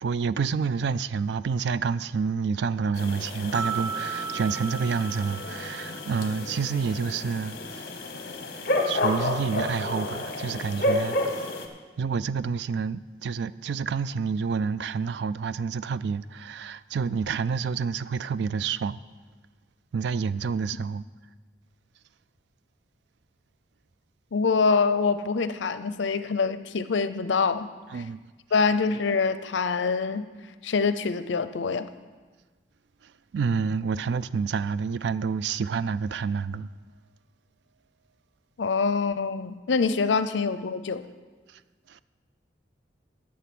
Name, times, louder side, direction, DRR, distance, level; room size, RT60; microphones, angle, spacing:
voice 1, 0.0-7.8 8.9-11.5 12.0-19.0 19.9-21.0 27.9-28.2 33.3-36.7 41.9-42.0, right 5 dB, 70° right, 0.3 m, -28 dB
sound 1, 3.0-11.7, left 1 dB, 50° left, 1.1 m, -31 dB
sound 2, 3.5-6.7, right 6 dB, 20° right, 0.9 m, -35 dB
voice 2, 24.3-27.7 28.5-30.3 30.6-31.9 38.6-41.0, left 4 dB, 85° left, 0.6 m, -25 dB
11.5 x 7.5 x 6.0 m
head